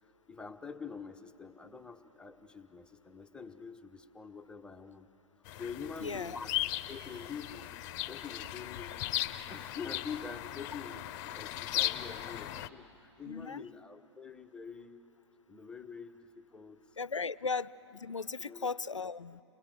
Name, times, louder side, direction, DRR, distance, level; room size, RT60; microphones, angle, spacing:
voice 1, 0.3-5.1 5.6-6.5 6.9-7.7 8.1-9.0 9.5-15.0 15.5-16.8 18.5-18.7, left 5 dB, 5° left, 5 dB, 1.0 m, -46 dB
sound 1, 5.5-12.7, left 14 dB, 40° left, 0.8 m, -37 dB
voice 2, 6.0-6.5 13.3-13.7 17.0-19.4, left 4 dB, 90° left, 19 dB, 0.5 m, -37 dB
29.0 x 21.0 x 7.6 m, 2.9 s
figure-of-eight pair, 110°, 15 cm